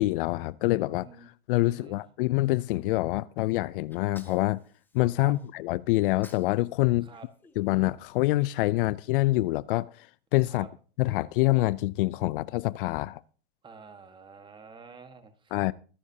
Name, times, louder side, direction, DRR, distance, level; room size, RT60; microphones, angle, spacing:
voice 1, 0.0-1.1 1.5-4.6 4.9-7.1 7.6-10.1 10.3-10.7 11.0-13.2 15.5-15.7, left 18 dB, 60° left, 0.5 m, -26 dB
voice 2, 0.9-1.3 1.6-2.0 5.2-5.3 7.0-7.3 10.5-10.7 13.6-15.5, right 5 dB, 15° right, 1.5 m, -48 dB
Sneeze, 3.9-5.5 6.0-6.6 6.8-8.3, left 2 dB, 5° left, 1.5 m, -52 dB
24.0 x 10.0 x 2.8 m
supercardioid pair, 135°, 31 cm